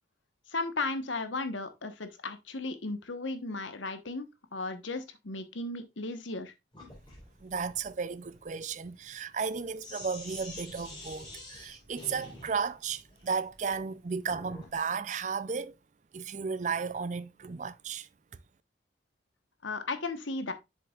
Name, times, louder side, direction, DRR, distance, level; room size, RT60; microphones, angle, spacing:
voice 1, 0.5-4.3 4.5-6.5 19.6-20.5, left 3 dB, 85° left, 1.2 m, -35 dB
Sink (filling or washing), 6.7-14.8, left 2 dB, 25° left, 3.4 m, -48 dB
voice 2, 7.4-15.7 16.1-18.1, right 5 dB, 40° right, 0.4 m, -34 dB
7.7 x 6.7 x 2.4 m
head